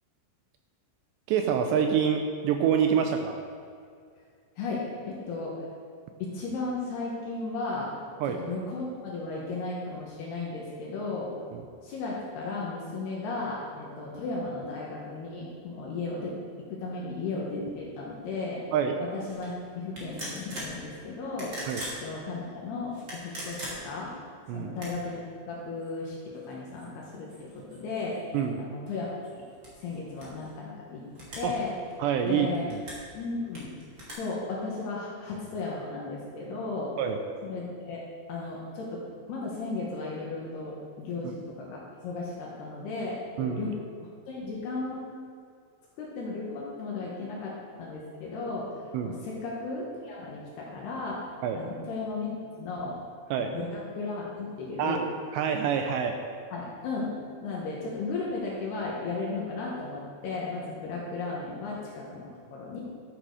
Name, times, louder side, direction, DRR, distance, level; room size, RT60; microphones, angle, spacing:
voice 1, 1.3-3.4 8.2-8.4 11.5-11.6 18.7-19.0 21.7-21.8 24.5-24.7 28.3-28.6 31.4-31.6 32.0-32.8 37.0-37.2 41.2-41.3 43.4-43.6 48.9-49.2 51.4-51.6 53.3-53.5 54.8-55.0 55.3-56.2, right 7 dB, 85° right, 4 dB, 2.5 m, -26 dB
voice 2, 4.6-5.6 6.2-7.9 8.4-11.3 11.8-16.4 16.7-18.6 19.0-21.6 22.0-24.1 24.5-28.3 28.6-29.4 29.8-31.0 31.4-31.7 32.2-32.7 33.1-33.7 34.1-36.9 37.4-38.0 38.3-39.0 39.3-43.7 44.3-45.1 46.0-48.7 49.0-52.3 52.6-53.0 53.4-55.1 56.5-57.1 57.4-62.8, left 3 dB, 65° left, -4 dB, 3.1 m, -35 dB
sound 1, 19.3-19.5 19.9-20.8 21.3-22.0 22.9-24.1 24.7-25.1 25.8-25.9 26.3-28.5 28.9-30.5 31.1-31.6 31.9-33.1 33.5-34.1, equal, 30° right, 2.6 m, -41 dB
12.5 x 8.9 x 4.9 m, 2.2 s
omnidirectional pair, 5.6 m